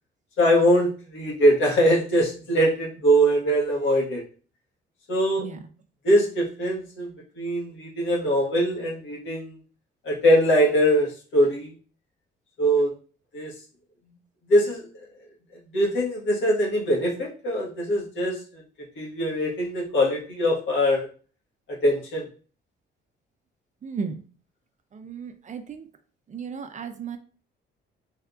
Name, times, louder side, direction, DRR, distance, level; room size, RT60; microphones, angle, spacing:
voice 1, 0.4-4.2 5.1-5.5 6.0-7.1 7.4-9.5 10.0-11.7 12.6-12.9 13.3-13.5 14.5-14.8 15.7-18.4 19.0-21.1 21.8-22.2, equal, 75° left, -3 dB, 1.4 m, -22 dB
voice 2, 23.8-24.2 24.9-25.8 26.3-27.2, right 6 dB, 40° right, 8 dB, 0.5 m, -34 dB
3.3 x 2.8 x 2.4 m, 0.38 s
cardioid pair, 90°, 20 cm